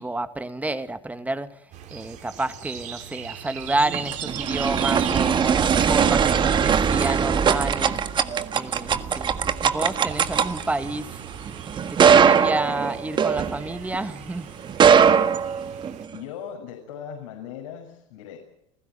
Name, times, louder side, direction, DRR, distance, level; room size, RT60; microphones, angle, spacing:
voice 1, 0.0-1.5 1.9-8.0 8.5-11.2 11.9-14.5, right 2 dB, 10° right, 2.1 m, -29 dB
sound 1, 1.7-16.1, right 9 dB, 50° right, 3.6 m, -40 dB
sound 2, 3.7-14.0 14.6-16.1, right 7 dB, 30° right, 1.6 m, -20 dB
voice 2, 16.1-18.4, left 8 dB, 80° left, 6.9 m, -38 dB
29.0 x 15.5 x 9.1 m
supercardioid pair, 105°, 16 cm